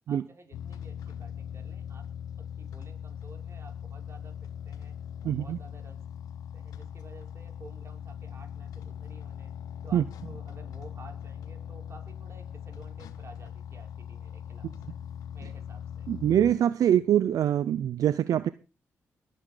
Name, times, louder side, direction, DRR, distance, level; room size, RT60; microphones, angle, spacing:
voice 1, 0.1-2.1 2.4-4.3 4.7-4.9 5.2-6.0 6.5-9.5 9.8-15.0 15.3-16.1, right 3 dB, 45° right, 3 dB, 5.8 m, -52 dB
sound 1, 0.5-16.5, left 8 dB, 85° left, 1.3 m, -40 dB
voice 2, 5.2-5.6 9.9-10.0 16.1-18.5, right 10 dB, 80° right, 15 dB, 0.6 m, -24 dB
21.5 x 9.3 x 3.9 m, 0.32 s
supercardioid pair, 50°, 6 cm